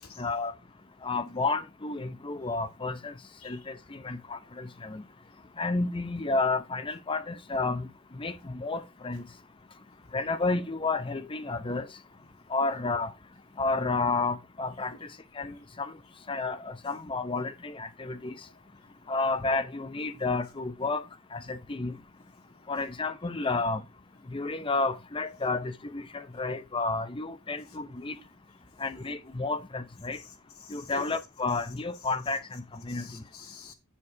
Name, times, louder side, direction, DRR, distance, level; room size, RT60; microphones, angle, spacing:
voice 1, 0.2-0.5 1.0-3.1 3.4-5.0 5.6-7.9 8.1-9.2 10.1-11.9 12.5-13.1 13.6-14.9 15.4-15.9 16.3-18.3 19.1-21.0 21.3-22.0 22.7-23.8 24.3-28.2 28.8-30.2 30.7-33.0, left 3 dB, 25° left, 0.6 m, -31 dB
voice 2, 30.1-31.1 32.9-33.7, left 4 dB, 75° left, 2.4 m, -47 dB
7.2 x 6.9 x 4.6 m
head